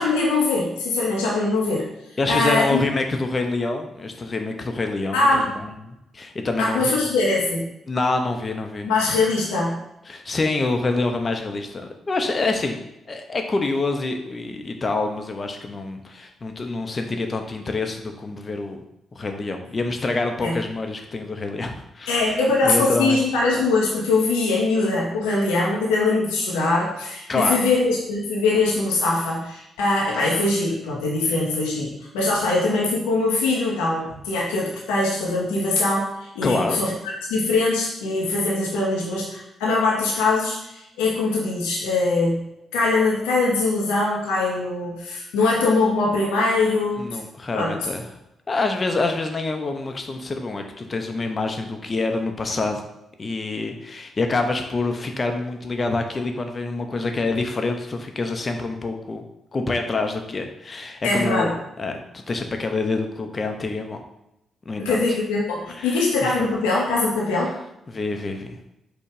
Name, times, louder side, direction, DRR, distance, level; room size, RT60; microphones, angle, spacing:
voice 1, 0.0-1.9 2.3-2.9 5.1-5.5 6.6-7.7 8.8-9.8 20.4-20.6 22.1-47.2 47.5-47.7 61.0-61.6 64.8-67.5, left 3 dB, 85° left, -4 dB, 0.8 m, -22 dB
voice 2, 2.2-7.0 7.9-8.9 10.1-18.8 19.1-22.1 22.6-23.2 27.3-27.6 36.4-36.8 47.0-48.0 48.5-52.8 53.2-59.2 59.5-64.0 64.7-65.0 65.8-66.4 67.9-68.6, left 3 dB, 40° left, 5 dB, 0.8 m, -26 dB
4.5 x 2.4 x 4.8 m, 0.87 s
hypercardioid pair, 45°, 0 cm